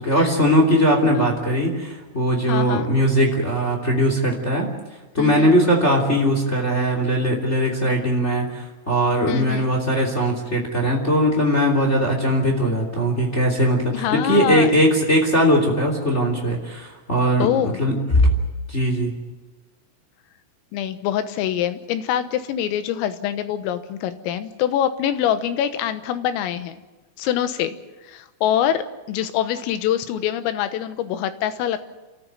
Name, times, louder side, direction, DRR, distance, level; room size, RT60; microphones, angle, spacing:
voice 1, 0.0-4.7 5.1-18.3 18.7-19.1, equal, 20° left, 1 dB, 2.4 m, -20 dB
voice 2, 2.5-2.9 5.2-5.6 9.3-9.7 13.9-14.7 17.4-17.8 20.7-26.8 27.2-27.8 28.0-31.8, left 10 dB, 85° left, 10 dB, 3.8 m, -24 dB
27.5 x 14.0 x 9.3 m, 1.2 s
omnidirectional pair, 5.8 m